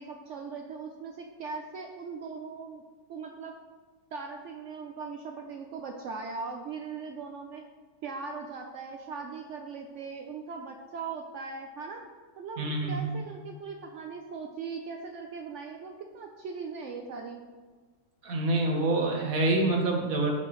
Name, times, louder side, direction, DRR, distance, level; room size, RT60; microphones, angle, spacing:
voice 1, 0.0-2.8 3.1-3.5 4.1-7.6 8.0-12.0 12.4-17.4, right 4 dB, 75° right, 3 dB, 0.6 m, -39 dB
voice 2, 12.6-13.2 18.2-20.3, right 2 dB, 55° right, 1 dB, 1.5 m, -26 dB
13.0 x 4.4 x 3.1 m, 1.4 s
omnidirectional pair, 1.9 m